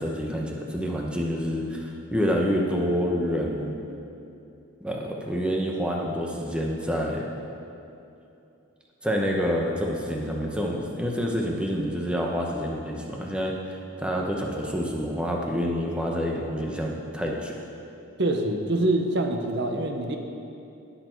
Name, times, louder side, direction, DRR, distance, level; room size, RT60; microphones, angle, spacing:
voice 1, 0.0-3.8 4.8-7.3 9.0-17.5, equal, 5° right, -1 dB, 1.0 m, -28 dB
voice 2, 18.2-20.2, right 1 dB, 55° right, 4 dB, 0.9 m, -25 dB
18.5 x 6.9 x 4.6 m, 2.7 s
head